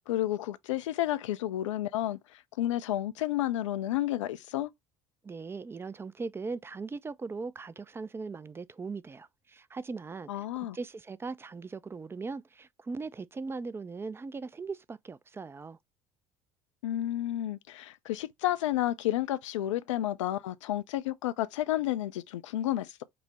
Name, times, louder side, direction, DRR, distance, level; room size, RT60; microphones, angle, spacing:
voice 1, 0.1-2.2 2.6-4.7 10.3-10.8 16.8-23.0, left 13 dB, 75° left, 0.5 m, -31 dB
voice 2, 5.2-10.3 10.7-15.8, right 4 dB, 15° right, 0.4 m, -39 dB
5.3 x 2.1 x 4.0 m
figure-of-eight pair, 60°, 16 cm